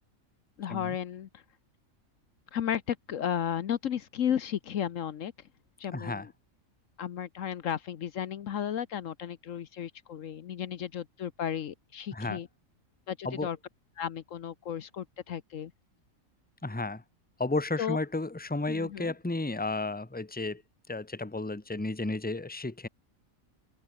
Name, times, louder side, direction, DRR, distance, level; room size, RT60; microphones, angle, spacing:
voice 1, 0.6-1.4 2.5-5.3 5.8-6.3 7.0-12.5 13.1-13.6 14.0-15.7 17.8-18.0 18.7-19.1, left 9 dB, 70° left, 1.2 m, -34 dB
voice 2, 5.9-6.3 12.1-12.4 13.2-13.5 16.6-17.0 17.4-20.6 20.9-22.9, left 2 dB, 5° left, 1.3 m, -33 dB
open air
omnidirectional pair, 1.4 m